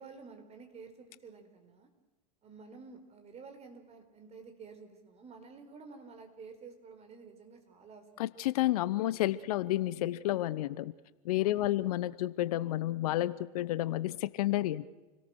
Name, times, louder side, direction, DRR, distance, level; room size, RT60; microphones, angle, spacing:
voice 1, 0.0-1.9 2.4-8.4 11.4-11.8, right 4 dB, 30° right, 6 dB, 4.8 m, -51 dB
voice 2, 8.2-10.9 11.2-14.8, left 15 dB, 65° left, 17 dB, 0.9 m, -30 dB
29.0 x 18.0 x 6.3 m, 1.1 s
hypercardioid pair, 85°, 20 cm